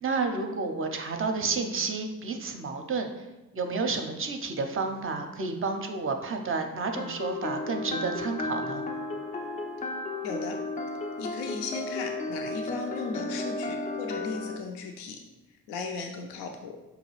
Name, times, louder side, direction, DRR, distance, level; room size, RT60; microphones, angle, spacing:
voice 1, 0.0-3.1 3.5-8.9, right 4 dB, 30° right, 5 dB, 0.5 m, -30 dB
sound 1, 7.0-14.6, left 2 dB, 20° left, 0.4 m, -34 dB
voice 2, 10.2-10.6 11.2-15.2 15.7-16.8, left 4 dB, 70° left, 3 dB, 0.5 m, -36 dB
4.9 x 2.3 x 3.1 m, 1.1 s
hypercardioid pair, 45°, 43 cm